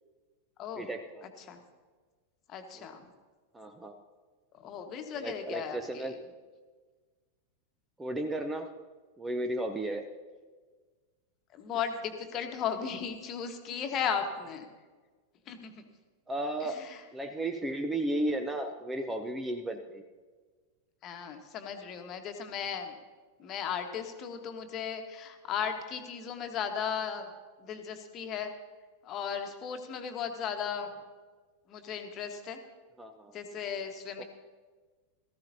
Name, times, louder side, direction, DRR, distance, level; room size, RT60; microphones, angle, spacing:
voice 1, 0.8-1.2 2.8-2.9 3.5-4.0 5.1-6.2 8.0-8.7 9.2-10.0 16.3-16.8 17.1-20.0 33.0-33.3 34.2-34.3, right 1 dB, 10° right, 6 dB, 0.7 m, -34 dB
voice 2, 2.5-3.0 4.6-6.1 11.5-14.7 15.5-15.8 16.6-17.0 21.0-22.9 23.4-27.3 27.6-28.5 29.0-31.0 31.7-32.6 33.3-34.2, left 7 dB, 35° left, 6 dB, 1.3 m, -36 dB
18.0 x 14.0 x 2.8 m, 1.4 s
figure-of-eight pair, 90°, 0 cm